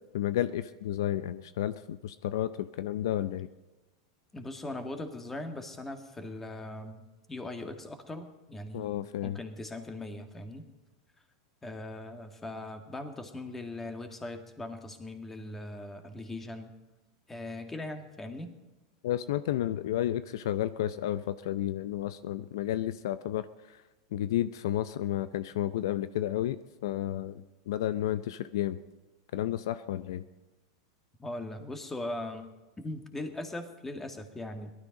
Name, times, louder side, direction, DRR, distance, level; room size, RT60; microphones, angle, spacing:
voice 1, 0.1-3.5 8.7-9.4 19.0-23.5 24.1-26.6 26.8-28.8 29.3-30.3, left 12 dB, 75° left, 14 dB, 0.6 m, -31 dB
voice 2, 4.3-9.0 9.2-10.6 11.6-16.7 17.3-18.5 31.2-32.5 32.8-34.7, left 2 dB, 10° left, 6 dB, 1.9 m, -40 dB
18.0 x 13.0 x 5.3 m, 1.2 s
hypercardioid pair, 115°, 2 cm